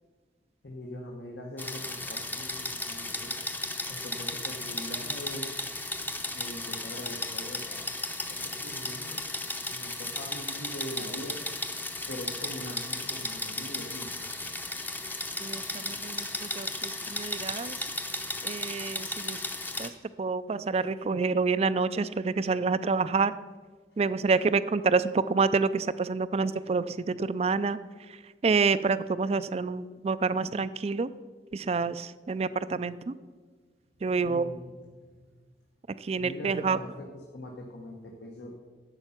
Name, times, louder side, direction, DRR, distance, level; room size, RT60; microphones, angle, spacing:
voice 1, 0.6-5.6 6.3-7.9 8.2-9.2 9.7-11.6 12.1-14.1 34.2-34.7 35.0-35.3 36.2-37.1 37.3-38.5, equal, 80° left, 0 dB, 1.3 m, -42 dB
sound 1, 1.6-19.9, left 1 dB, 10° left, 0.7 m, -35 dB
voice 2, 15.4-17.8 18.4-19.4 19.8-19.9 20.2-23.3 24.0-27.8 28.4-31.1 31.5-33.1 34.0-34.5 36.0-36.8, right 4 dB, 35° right, 15 dB, 0.4 m, -28 dB
11.5 x 7.7 x 5.8 m, 1.5 s
head